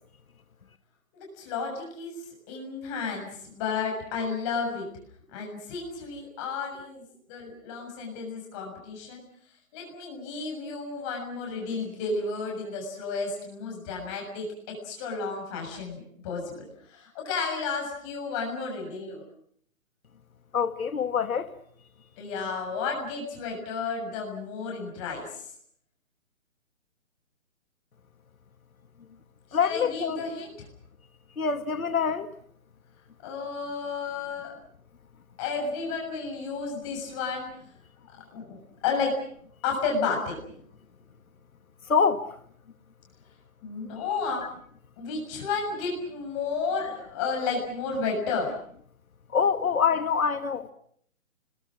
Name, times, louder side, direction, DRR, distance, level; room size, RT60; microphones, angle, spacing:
voice 1, 1.1-2.1 2.5-4.9 5.3-7.0 7.3-9.2 9.7-19.2 22.2-25.5 29.5-30.7 33.2-34.5 35.4-37.5 38.3-39.1 39.6-40.4 43.6-44.4 45.0-48.5, left 4 dB, 20° left, 6.9 m, -32 dB
voice 2, 20.5-21.5 29.5-30.2 31.4-32.3 41.9-42.3 49.3-50.7, left 6 dB, 85° left, 1.7 m, -25 dB
30.0 x 22.0 x 6.2 m
hypercardioid pair, 165°, 41 cm